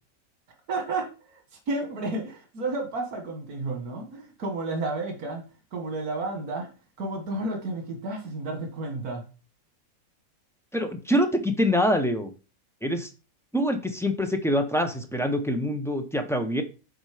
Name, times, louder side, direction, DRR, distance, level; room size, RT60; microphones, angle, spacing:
voice 1, 0.7-1.4 1.7-5.4 5.7-6.7 7.0-9.2, right 2 dB, 85° right, 3 dB, 1.9 m, -31 dB
voice 2, 10.7-12.3 12.8-13.1 13.5-16.6, equal, 5° left, 5 dB, 0.6 m, -25 dB
8.0 x 4.0 x 4.9 m, 0.34 s
omnidirectional pair, 1.5 m